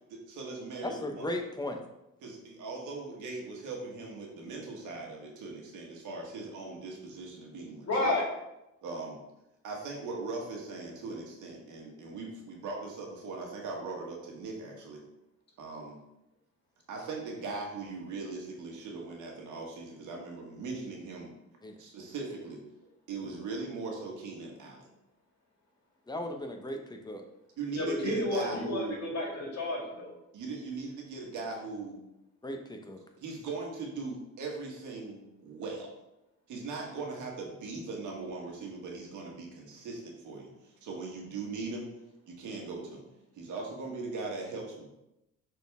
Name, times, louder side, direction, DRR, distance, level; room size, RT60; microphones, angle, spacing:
voice 1, 0.1-1.3 2.2-8.1 8.8-9.2 9.6-15.0 15.6-16.0 16.9-21.3 21.8-22.6 23.1-24.9 27.6-29.0 30.3-32.0 33.2-35.9 36.5-41.9 42.3-43.0 43.3-44.9, right 3 dB, 80° right, 0 dB, 1.6 m, -39 dB
voice 2, 0.8-1.8 21.6-21.8 26.1-26.8 27.1-27.2 32.4-33.0, left 1 dB, 15° left, 4 dB, 0.8 m, -36 dB
voice 3, 7.9-8.3 27.7-30.1, left 2 dB, 60° left, -2 dB, 2.2 m, -31 dB
6.4 x 4.3 x 3.6 m, 0.89 s
cardioid pair, 90°, 30 cm